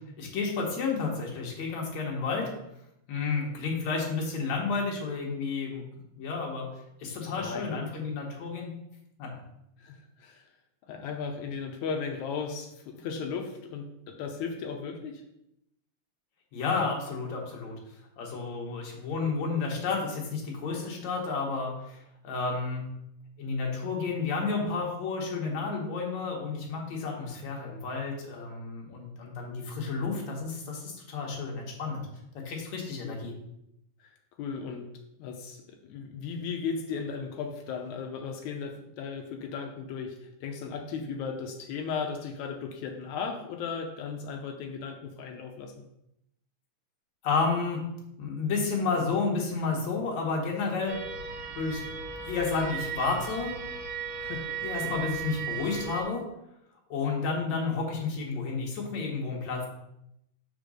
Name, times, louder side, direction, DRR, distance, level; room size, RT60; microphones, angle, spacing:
voice 1, 0.2-2.5 3.1-5.8 6.2-6.7 7.0-8.7 9.2-9.3 16.5-17.8 18.2-22.0 22.2-22.8 23.4-32.0 32.3-33.3 47.2-47.8 48.2-51.0 51.6-51.8 52.2-53.5 54.6-56.2 56.9-59.7, left 4 dB, 60° left, -1 dB, 2.3 m, -31 dB
voice 2, 7.4-8.0 9.8-10.4 10.9-15.2 27.3-27.4 29.6-29.7 33.0-33.2 34.0-34.1 34.4-34.9 35.2-45.7 54.2-54.6 54.8-55.0, left 5 dB, 85° left, 3 dB, 1.6 m, -36 dB
sound 1, 50.9-56.0, right 6 dB, 70° right, 1.5 m, -36 dB
5.2 x 4.5 x 6.2 m, 0.80 s
omnidirectional pair, 4.2 m